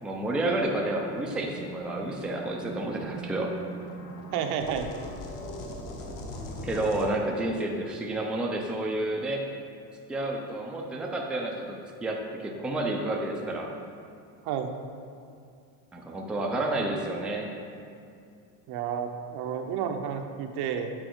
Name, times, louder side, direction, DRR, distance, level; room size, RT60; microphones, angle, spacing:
voice 1, 0.0-3.5 6.6-9.5 10.1-13.7 15.9-17.5, right 1 dB, ahead, 0 dB, 0.4 m, -30 dB
sound 1, 1.1-7.0, equal, 45° left, 1.1 m, -40 dB
voice 2, 4.3-4.9 14.4-14.7 18.7-20.9, right 8 dB, 55° right, 6 dB, 0.7 m, -31 dB
7.7 x 4.1 x 4.6 m, 2.4 s
cardioid pair, 140°, 46 cm